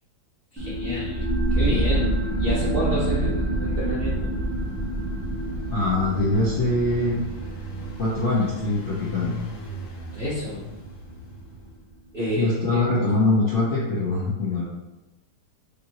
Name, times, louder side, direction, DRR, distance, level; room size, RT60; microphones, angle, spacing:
voice 1, 0.5-1.2 1.6-4.3 10.1-10.6 12.1-12.9, equal, 55° right, -8 dB, 0.6 m, -29 dB
sound 1, 0.6-11.7, right 1 dB, ahead, 1.0 m, -28 dB
Engine, 4.0-11.9, left 2 dB, 75° left, 1.6 m, -39 dB
voice 2, 5.7-7.2 8.0-9.4 12.3-14.6, left 2 dB, 60° left, -7 dB, 0.8 m, -23 dB
5.1 x 2.6 x 2.9 m, 1.1 s
omnidirectional pair, 2.2 m